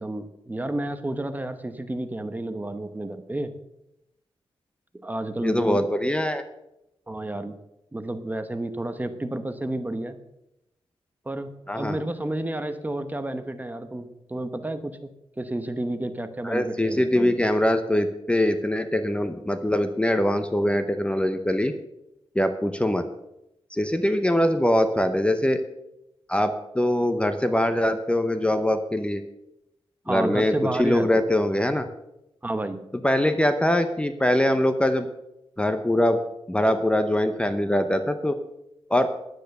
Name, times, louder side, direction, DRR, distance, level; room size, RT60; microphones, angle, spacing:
voice 1, 0.0-3.5 5.0-5.9 7.1-7.6 7.9-10.2 11.3-15.1 15.4-17.4 30.1-31.3 32.4-32.8, right 1 dB, 15° right, 9 dB, 0.9 m, -31 dB
voice 2, 5.4-6.4 11.7-12.0 16.4-21.7 22.3-23.1 23.7-25.6 26.3-29.2 30.1-31.9 33.0-35.1 35.6-36.2 36.5-38.4 38.9-39.1, left 1 dB, 10° left, 8 dB, 0.7 m, -23 dB
10.5 x 9.2 x 6.6 m, 0.87 s
wide cardioid pair, 120°, 10 cm